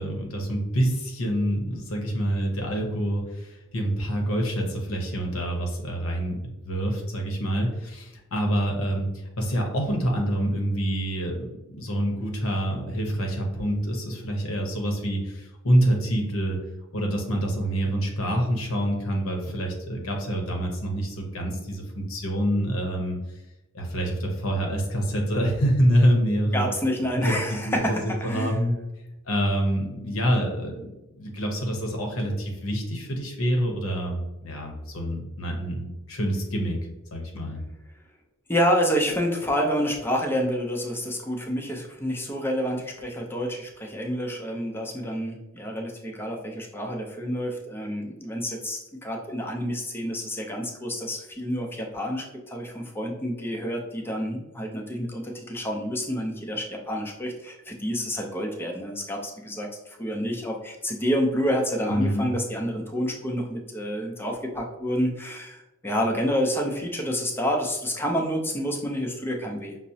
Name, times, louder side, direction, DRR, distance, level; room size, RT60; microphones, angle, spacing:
voice 1, 0.0-6.4 6.6-11.5 11.7-16.6 16.9-23.4 23.7-26.7 27.1-27.3 27.6-28.7 29.3-36.8 37.1-37.6 61.9-62.3, equal, 70° left, 1 dB, 0.7 m, -26 dB
voice 2, 26.5-28.5 38.5-69.8, equal, 10° left, 1 dB, 0.5 m, -28 dB
5.7 x 2.0 x 2.7 m, 0.98 s
head